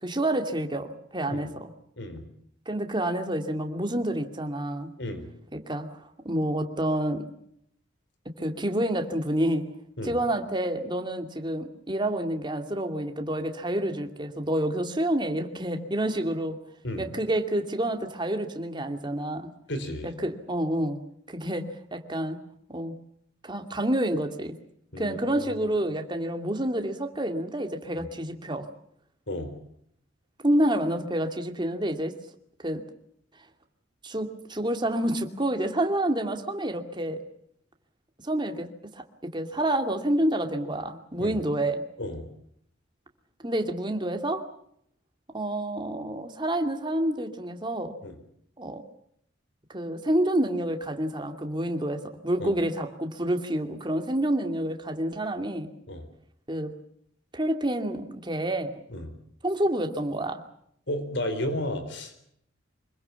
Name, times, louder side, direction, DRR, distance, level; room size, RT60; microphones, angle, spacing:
voice 1, 0.0-1.7 2.7-4.9 5.5-7.2 8.4-9.7 10.0-16.6 17.0-19.5 20.0-21.0 21.3-21.6 21.9-22.4 22.7-22.9 23.4-24.5 25.0-28.7 30.4-32.1 32.6-32.8 34.0-37.2 38.2-38.7 38.9-39.0 39.3-41.8 43.4-44.4 45.3-47.9 48.6-48.8 49.7-55.7 56.5-56.7 57.3-58.7 59.4-60.4, right 1 dB, 25° right, 5 dB, 2.6 m, -28 dB
voice 2, 19.7-20.1 24.9-25.5 27.9-28.1 29.3-29.6 41.2-41.4 42.0-42.2 48.0-48.2 52.4-52.5 55.9-56.0 58.9-59.1 60.9-62.2, left 1 dB, 60° left, 9 dB, 4.4 m, -33 dB
25.5 x 22.5 x 7.1 m, 0.70 s
head